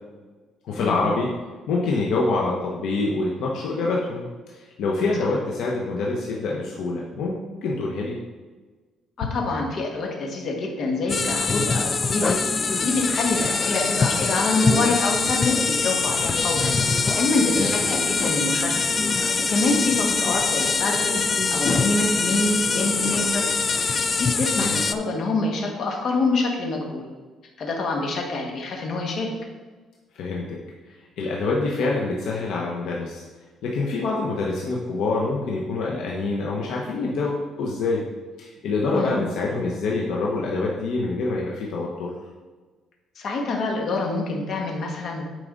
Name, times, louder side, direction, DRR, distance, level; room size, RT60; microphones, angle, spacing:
voice 1, 0.6-1.3 1.7-8.2 17.3-17.7 24.5-24.8 30.1-30.4 30.9-33.2 33.6-38.0 38.4-42.1, left 3 dB, 75° left, -2 dB, 1.1 m, -26 dB
voice 2, 9.2-12.4 12.8-16.7 17.2-21.1 21.5-23.5 23.7-27.0 27.6-29.3 38.9-39.2 43.1-45.2, left 2 dB, 50° left, 1 dB, 1.7 m, -26 dB
sound 1, 11.1-24.9, left 4 dB, 30° left, 0.4 m, -23 dB
9.7 x 5.0 x 3.9 m, 1.3 s
cardioid pair, 135°, 0 cm